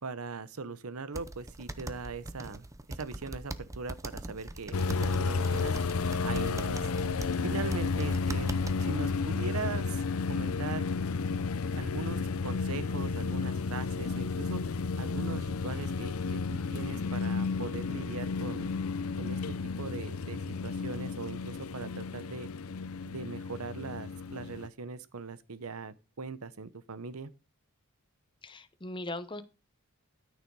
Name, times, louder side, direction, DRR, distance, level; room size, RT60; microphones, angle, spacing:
voice 1, 0.0-5.8 6.2-6.9 7.4-10.0 10.3-10.9 11.7-14.6 15.0-18.7 19.2-22.5 23.1-27.3, right 4 dB, 90° right, 0.9 m, -40 dB
sound 1, 1.1-8.9, right 1 dB, 15° right, 0.6 m, -41 dB
sound 2, 4.7-24.7, left 4 dB, 80° left, 0.6 m, -32 dB
voice 2, 28.4-29.4, left 2 dB, 20° left, 0.8 m, -39 dB
13.0 x 6.5 x 4.7 m
head